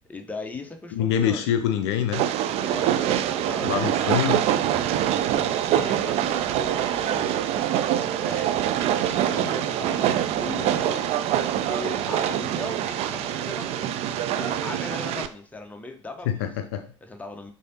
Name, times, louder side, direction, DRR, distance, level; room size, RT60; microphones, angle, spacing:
voice 1, 0.1-1.5 2.6-4.4 5.3-11.1 11.5-16.5 17.0-17.5, left 2 dB, 10° left, 5 dB, 0.7 m, -38 dB
voice 2, 0.9-2.2 3.6-4.4 16.3-16.8, left 9 dB, 60° left, 8 dB, 0.5 m, -25 dB
Train, 2.1-15.3, right 11 dB, 40° right, 0.4 m, -25 dB
6.3 x 2.7 x 2.8 m, 0.43 s
figure-of-eight pair, 65°, 16 cm